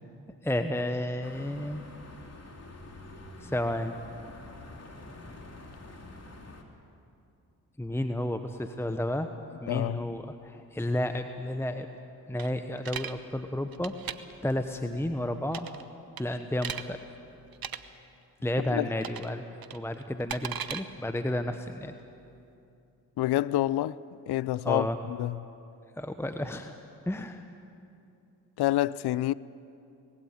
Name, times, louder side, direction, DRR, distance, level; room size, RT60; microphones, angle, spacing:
voice 1, 0.4-1.8 3.4-4.0 7.8-9.3 9.6-11.9 12.3-13.9 14.4-15.7 16.2-17.0 18.4-19.4 19.7-21.9 24.6-25.0 26.0-26.8 27.1-27.4, left 1 dB, 5° left, 1.1 m, -31 dB
sound 1, 1.2-6.6, left 2 dB, 35° left, 3.1 m, -47 dB
voice 2, 9.7-10.0 18.7-18.9 23.2-24.0 24.3-25.4 28.6-29.3, left 14 dB, 60° left, 0.6 m, -27 dB
sound 2, 12.4-13.1 13.7-14.2 15.5-15.8 16.2-16.8 17.5-17.8 19.0-19.3 19.6-20.8, right 8 dB, 50° right, 1.1 m, -37 dB
20.5 x 15.5 x 9.3 m
hypercardioid pair, 40°, 45 cm